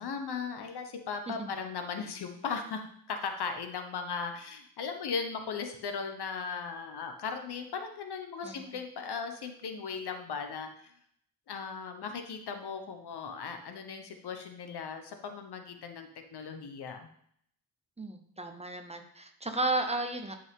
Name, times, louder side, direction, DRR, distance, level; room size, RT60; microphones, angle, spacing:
voice 1, 0.0-2.8 3.1-10.7 11.5-17.1, left 5 dB, 85° left, 6 dB, 1.1 m, -37 dB
voice 2, 8.4-8.8 18.0-20.4, right 2 dB, 15° right, 5 dB, 0.8 m, -33 dB
11.0 x 5.3 x 3.7 m, 0.68 s
wide cardioid pair, 145°, 38 cm